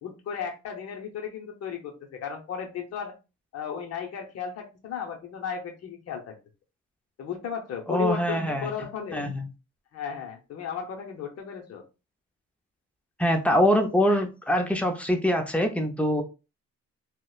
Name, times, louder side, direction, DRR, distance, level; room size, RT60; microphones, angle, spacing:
voice 1, 0.0-3.1 3.5-6.3 7.2-9.3 9.9-11.8, left 7 dB, 55° left, 0.7 m, -35 dB
voice 2, 7.9-8.7 9.1-9.5 13.2-16.2, equal, 5° left, 0.5 m, -24 dB
2.8 x 2.1 x 2.3 m
cardioid pair, 90°, 30 cm